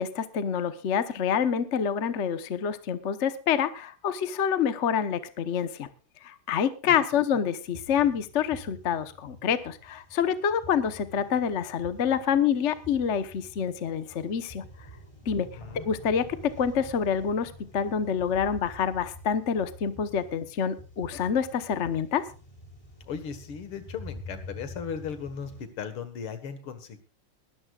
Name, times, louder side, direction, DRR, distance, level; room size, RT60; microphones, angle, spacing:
voice 1, 0.0-5.9 6.2-14.6 15.2-15.5 15.7-22.2, left 7 dB, 45° left, 11 dB, 1.0 m, -27 dB
voice 2, 6.9-7.2 15.3-15.8 23.1-27.0, left 7 dB, 75° left, 10 dB, 2.5 m, -37 dB
sound 1, 7.7-25.7, left 1 dB, 15° left, 3.2 m, -47 dB
21.0 x 13.0 x 2.4 m, 0.34 s
omnidirectional pair, 2.4 m